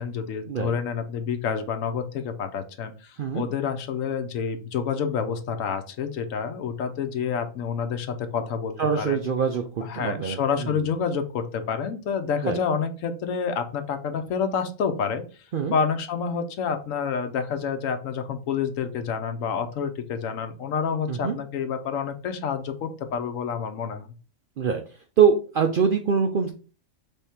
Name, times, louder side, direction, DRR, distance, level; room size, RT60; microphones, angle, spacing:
voice 1, 0.0-9.2 9.8-15.2 15.7-24.1, left 6 dB, 75° left, 8 dB, 1.1 m, -28 dB
voice 2, 8.8-10.9 12.4-12.6 15.5-15.7 21.1-21.4 24.6-24.8 25.2-26.5, right 6 dB, 65° right, 4 dB, 0.5 m, -24 dB
3.6 x 3.5 x 4.2 m, 0.37 s
omnidirectional pair, 1.4 m